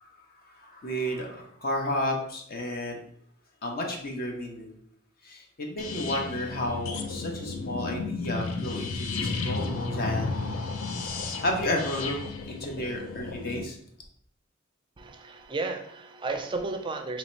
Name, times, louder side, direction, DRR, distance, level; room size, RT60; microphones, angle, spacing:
voice 1, 0.3-3.0 3.6-4.7 5.2-10.8 11.4-12.2 12.5-13.8, left 1 dB, 45° left, 1 dB, 0.7 m, -32 dB
sound 1, 5.8-13.6, left 3 dB, 80° left, 0.5 m, -33 dB
voice 2, 15.0-17.2, right 3 dB, 25° right, 5 dB, 0.4 m, -33 dB
3.0 x 2.8 x 4.3 m, 0.66 s
head